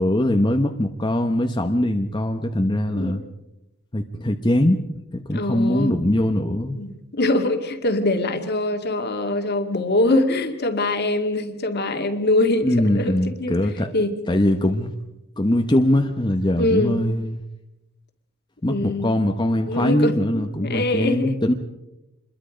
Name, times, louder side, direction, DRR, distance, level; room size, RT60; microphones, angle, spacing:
voice 1, 0.0-3.2 3.9-4.8 5.1-6.8 12.6-13.9 14.3-14.9 15.4-17.4 18.6-21.5, left 1 dB, 20° left, 4 dB, 1.0 m, -21 dB
voice 2, 5.3-6.0 6.7-13.6 13.9-14.2 16.6-17.0 18.7-19.1 19.6-21.4, left 2 dB, 55° left, 6 dB, 2.1 m, -23 dB
26.5 x 22.0 x 5.1 m, 0.93 s
head